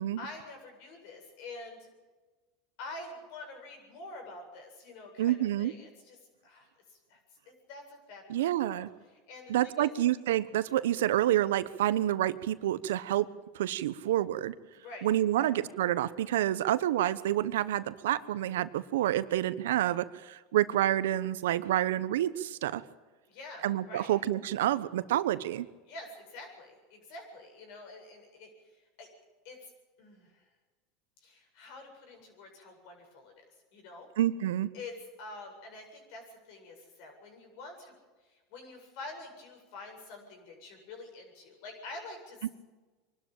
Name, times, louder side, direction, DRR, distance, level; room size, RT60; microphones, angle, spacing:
voice 1, 0.2-1.9 2.8-6.2 6.4-7.2 7.5-8.8 9.1-9.9 14.7-15.5 23.3-24.1 25.9-29.1 29.4-29.7 30.0-30.4 31.2-33.4 33.7-34.1 34.7-34.9 35.2-37.9 38.2-42.5, left 2 dB, 65° left, 3 dB, 8.0 m, -47 dB
voice 2, 5.2-5.7 8.3-8.9 9.5-13.3 13.5-14.5 15.0-22.8 23.6-25.7 34.2-34.7 42.4-42.5, right 13 dB, 85° right, 15 dB, 1.0 m, -28 dB
24.0 x 12.5 x 8.9 m, 1.3 s
hypercardioid pair, 105°, 0 cm